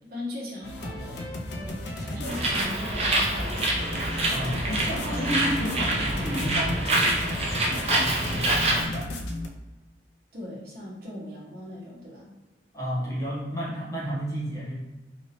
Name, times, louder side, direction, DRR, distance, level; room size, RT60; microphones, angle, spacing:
voice 1, 0.1-1.3 1.6-3.9 10.3-12.3, left 1 dB, 55° right, -5 dB, 1.0 m, -39 dB
sound 1, 0.6-9.5, left 1 dB, 65° left, 0.4 m, -34 dB
Bird, 2.2-8.8, right 1 dB, 35° right, 0.6 m, -26 dB
voice 2, 4.3-9.1 12.7-14.8, equal, 20° left, -8 dB, 1.1 m, -32 dB
3.0 x 2.7 x 2.9 m, 1.1 s
head